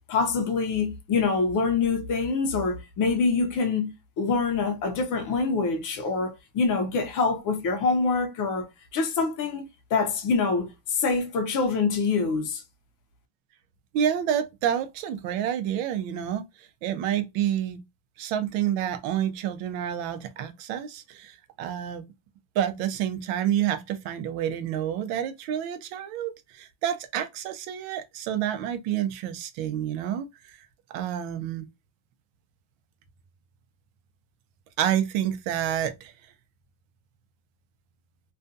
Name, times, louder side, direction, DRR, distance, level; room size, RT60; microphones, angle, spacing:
voice 1, 0.1-8.7 8.9-9.6 9.9-12.6, left 4 dB, 40° left, 0.6 m, -25 dB
voice 2, 13.9-17.8 18.2-22.0 22.5-30.6 30.9-31.7 34.8-36.1, right 10 dB, 80° right, 0.7 m, -29 dB
2.4 x 2.3 x 2.5 m
cardioid pair, 170°, 48 cm